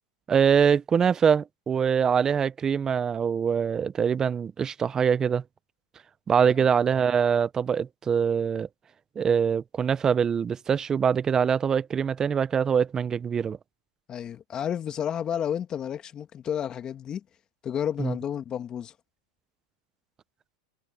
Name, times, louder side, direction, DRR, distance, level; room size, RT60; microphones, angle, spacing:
voice 1, 0.3-5.4 6.3-8.7 9.2-13.6 18.0-18.2, right 7 dB, 20° right, 0.7 m, -23 dB
voice 2, 14.1-17.2 17.6-18.9, left 9 dB, 30° left, 2.4 m, -31 dB
supercardioid pair, 125°, 3 cm